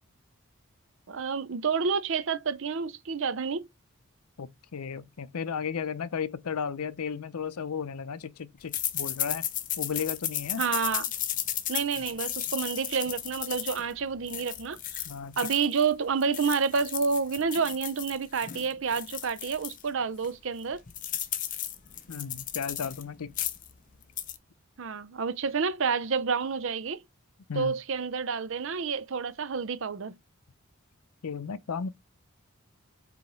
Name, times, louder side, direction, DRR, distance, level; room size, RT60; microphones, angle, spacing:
voice 1, 1.1-3.7 10.6-11.1 11.7-15.0 15.4-20.8 24.8-27.0 27.5-30.2, right 5 dB, 60° right, 0.5 m, -29 dB
voice 2, 4.4-9.5 9.8-10.6 15.1-15.3 22.1-23.3 27.5-27.7 31.2-31.9, left 6 dB, 90° left, 0.6 m, -34 dB
sound 1, 8.7-15.9 16.2-19.8 20.2-20.3 20.6-23.0 23.3-23.7 24.0-24.4, left 11 dB, 35° left, 0.6 m, -34 dB
4.8 x 4.1 x 5.3 m
head